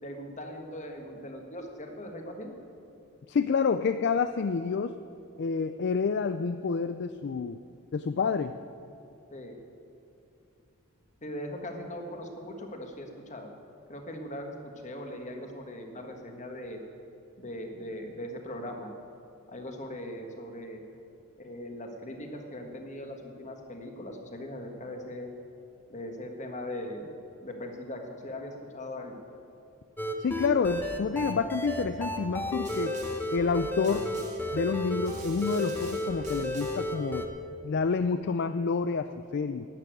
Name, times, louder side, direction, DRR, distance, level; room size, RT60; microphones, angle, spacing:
voice 1, 0.0-2.5 9.3-9.6 11.2-13.5 13.9-16.8 17.4-18.9 19.5-20.8 21.4-25.3 25.9-27.1 27.4-29.2, left 1 dB, 35° left, 4 dB, 1.5 m, -40 dB
voice 2, 3.3-5.0 5.4-7.6 7.9-8.6 30.2-33.0 33.3-34.1 34.5-37.3 37.6-39.7, left 5 dB, 50° left, 10 dB, 0.4 m, -28 dB
sound 1, 30.0-37.3, left 1 dB, 10° left, 1.0 m, -33 dB
Snare drum, 32.6-33.3 33.8-34.5 35.0-36.9, right 4 dB, 35° right, 2.0 m, -48 dB
12.0 x 8.4 x 9.1 m, 2.7 s
head